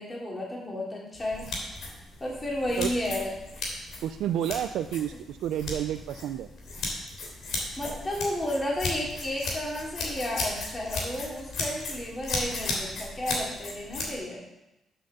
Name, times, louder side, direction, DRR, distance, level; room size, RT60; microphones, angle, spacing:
voice 1, 0.0-1.5 2.2-3.3 7.8-14.4, left 1 dB, 25° left, -3 dB, 3.0 m, -32 dB
sound 1, 1.1-14.1, left 2 dB, 75° left, 3.1 m, -35 dB
voice 2, 4.0-6.5, right 11 dB, 80° right, 9 dB, 0.4 m, -30 dB
7.6 x 6.5 x 6.9 m, 0.92 s
cardioid pair, 90°, 0 cm